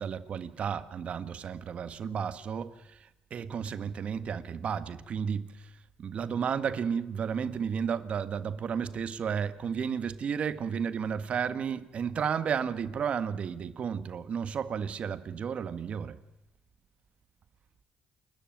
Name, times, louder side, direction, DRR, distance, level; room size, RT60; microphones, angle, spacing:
voice 1, 0.0-5.7 6.0-16.2, right 7 dB, 55° right, 1.6 m, -33 dB
29.0 x 13.0 x 9.2 m
cardioid pair, 75°, 2 cm